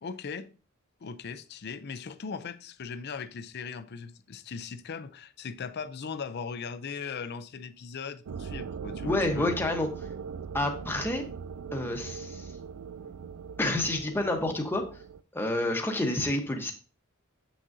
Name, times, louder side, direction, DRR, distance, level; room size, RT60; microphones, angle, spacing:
voice 1, 0.0-0.5 1.0-9.5, left 5 dB, 50° left, 0.5 m, -39 dB
sound 1, 8.3-15.2, right 6 dB, 75° right, 0.4 m, -40 dB
voice 2, 9.0-9.9 10.5-11.2 11.7-12.5 13.6-14.9 15.3-16.7, left 2 dB, 10° left, 1.0 m, -29 dB
7.8 x 6.1 x 2.7 m
head